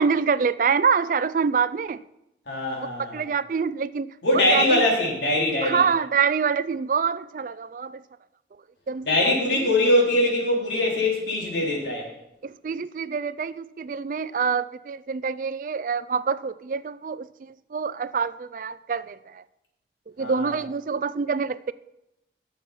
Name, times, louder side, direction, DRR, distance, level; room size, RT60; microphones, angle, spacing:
voice 1, 0.0-2.0 3.1-4.1 4.3-4.8 5.6-8.0 8.9-9.1 12.4-17.3 17.7-19.4 20.2-21.7, right 6 dB, 45° right, 0.3 m, -25 dB
voice 2, 2.5-3.2 4.2-5.8 9.0-12.1 20.2-20.5, left 1 dB, 80° left, 3.4 m, -22 dB
11.5 x 7.0 x 5.5 m
head